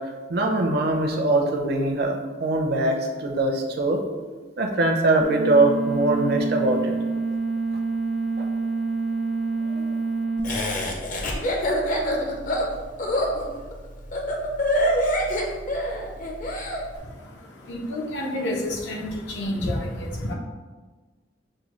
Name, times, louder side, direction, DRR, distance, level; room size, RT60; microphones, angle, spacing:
voice 1, 0.3-4.0 4.6-6.9 8.4-8.5 9.6-9.8, right 2 dB, 60° right, 3 dB, 0.6 m, -22 dB
sound 1, 5.2-10.4, right 3 dB, ahead, 0.4 m, -27 dB
Laughter, 10.4-16.8, equal, 45° left, 0.6 m, -25 dB
voice 2, 16.9-20.3, left 1 dB, 80° left, -1 dB, 0.8 m, -30 dB
6.5 x 2.2 x 3.0 m, 1.3 s
head